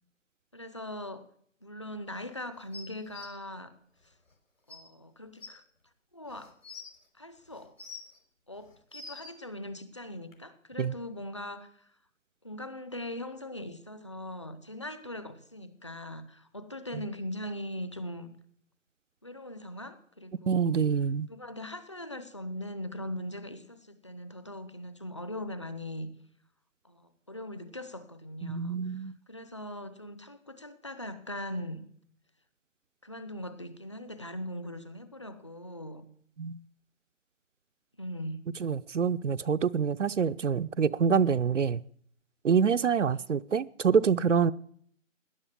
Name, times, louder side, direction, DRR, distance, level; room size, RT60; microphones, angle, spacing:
voice 1, 0.5-1.2 1.6-3.7 4.7-5.6 6.1-6.6 7.2-7.7 8.5-11.9 12.4-18.3 19.2-20.8 21.3-26.1 26.8-31.8 33.0-36.0 38.0-38.4 43.1-43.3, left 1 dB, 25° left, 0.8 m, -40 dB
sound 1, 2.7-3.3 4.3-4.4 4.7-4.8 5.4-5.5 6.3-6.9 7.5-8.2 8.7-9.3 10.3-10.4, left 4 dB, 80° left, 5.0 m, -45 dB
voice 2, 20.5-21.3 28.4-29.2 36.4-36.6 38.6-41.8 42.4-44.5, right 6 dB, 65° right, 0.6 m, -26 dB
17.5 x 10.5 x 7.4 m
hypercardioid pair, 170°, 39 cm